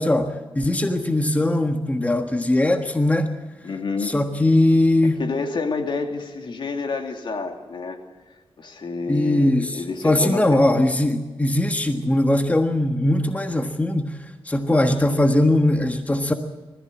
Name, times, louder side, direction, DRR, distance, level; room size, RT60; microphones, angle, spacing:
voice 1, 0.0-3.3 4.0-5.2 9.1-14.2 14.4-16.3, left 1 dB, 15° left, 6 dB, 1.5 m, -20 dB
voice 2, 3.6-4.2 5.0-8.0 8.6-10.6, left 4 dB, 65° left, 4 dB, 2.7 m, -29 dB
20.5 x 14.5 x 8.8 m, 1.2 s
cardioid pair, 85°, 9 cm